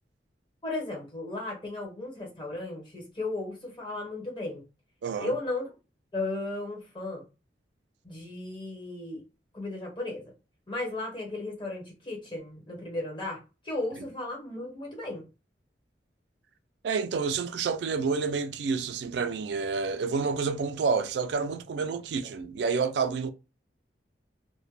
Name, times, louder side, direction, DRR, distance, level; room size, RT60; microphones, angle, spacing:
voice 1, 0.6-4.6 5.2-5.7 6.1-7.2 8.0-9.2 9.5-10.3 10.7-13.4 13.6-15.2, left 2 dB, 25° left, 1.0 m, -35 dB
voice 2, 16.8-23.3, right 5 dB, 75° right, 0.3 m, -29 dB
2.1 x 2.1 x 3.1 m
head